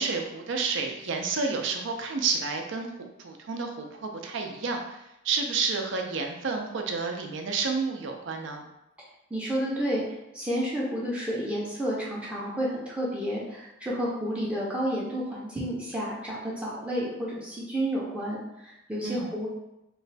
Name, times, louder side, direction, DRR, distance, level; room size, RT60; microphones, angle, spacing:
voice 1, 0.0-2.9 3.2-5.0 5.2-8.6 19.0-19.3, right 4 dB, 60° right, 3 dB, 0.5 m, -30 dB
voice 2, 9.3-10.0 10.3-19.5, equal, 5° right, -6 dB, 0.5 m, -30 dB
3.1 x 2.2 x 3.9 m, 0.90 s
head